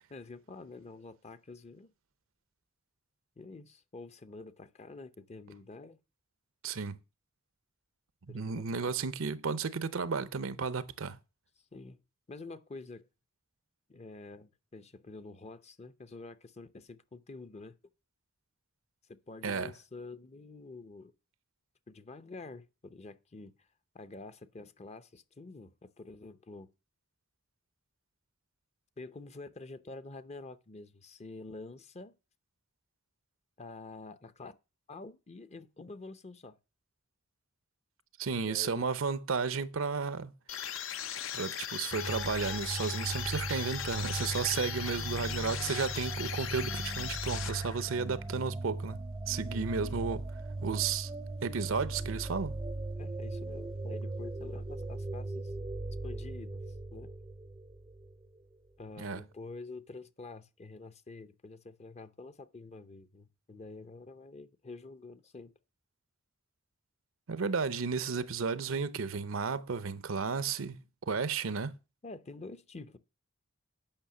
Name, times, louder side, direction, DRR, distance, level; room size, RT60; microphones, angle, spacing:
voice 1, 0.1-1.9 3.4-6.0 8.3-9.1 11.7-12.0 12.3-13.1 13.9-17.8 19.1-21.1 21.9-23.5 23.9-26.7 29.0-32.1 33.6-34.6 34.9-36.6 38.4-38.8 49.5-49.6 53.0-55.5 56.0-56.6 56.9-57.1 58.8-65.5 72.0-73.0, left 3 dB, 30° left, 0.7 m, -47 dB
voice 2, 6.6-7.0 8.3-11.2 19.4-19.7 38.2-40.3 41.3-50.3 50.6-51.1 51.4-52.6 59.0-59.2 67.3-71.8, right 5 dB, 70° right, 0.6 m, -33 dB
sound 1, 40.5-48.0, left 9 dB, 65° left, 0.7 m, -38 dB
sound 2, 41.9-58.3, right 2 dB, 20° right, 0.5 m, -38 dB
8.8 x 5.6 x 6.9 m
head